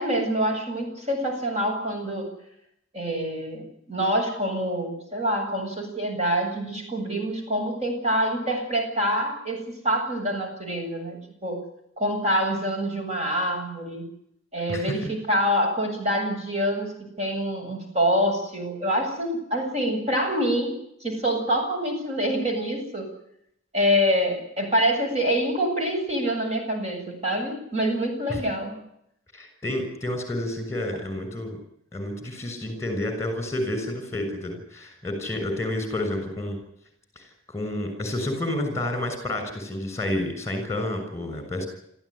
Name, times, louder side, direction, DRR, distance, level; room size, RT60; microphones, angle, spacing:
voice 1, 0.0-2.3 2.9-11.6 12.0-14.0 14.5-16.9 17.2-20.7 21.0-23.1 23.7-28.8, equal, 35° right, 3 dB, 7.9 m, -26 dB
voice 2, 14.7-15.1 28.3-28.4 29.3-31.6 31.9-36.6 37.1-41.7, left 1 dB, 15° left, 7 dB, 6.5 m, -30 dB
27.5 x 14.5 x 10.0 m, 0.75 s
head